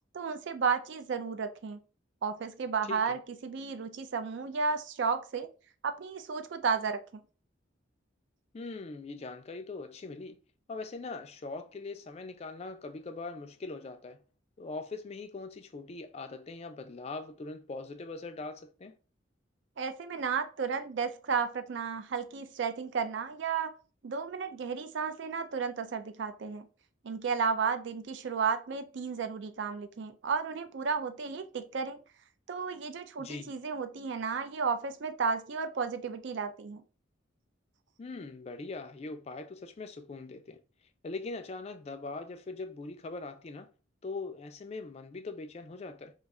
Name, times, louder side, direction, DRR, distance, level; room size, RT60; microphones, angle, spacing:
voice 1, 0.1-1.8 2.2-5.5 5.8-7.2 19.8-23.7 24.0-26.7 27.0-32.0 32.5-36.8, right 5 dB, 60° right, 0.4 m, -33 dB
voice 2, 8.5-10.4 10.7-14.2 14.6-18.9 33.2-33.5 38.0-40.6 41.0-43.7 44.0-46.1, left 3 dB, 35° left, 0.3 m, -41 dB
2.5 x 2.4 x 4.1 m
head